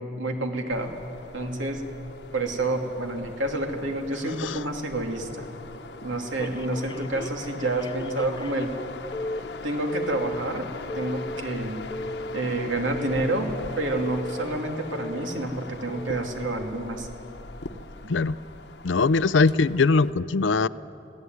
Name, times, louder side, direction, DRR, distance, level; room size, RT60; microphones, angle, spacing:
voice 1, 0.2-0.9 1.3-1.9 2.3-5.5 6.0-8.7 9.6-10.7 11.0-11.8 12.3-17.1 18.0-18.1, right 2 dB, 85° right, 3 dB, 2.8 m, -29 dB
sound 1, 0.7-20.1, left 3 dB, 65° left, 1.1 m, -41 dB
Telephone, 6.4-8.8 9.1-9.4 9.9-10.4 10.9-11.4 11.9-12.4 12.9-13.4 13.9-14.4 14.9-15.4 15.9-16.3, left 2 dB, 25° left, 0.7 m, -36 dB
voice 2, 18.8-20.7, left 4 dB, 80° left, 17 dB, 0.6 m, -21 dB
25.5 x 18.0 x 9.5 m, 2.9 s
head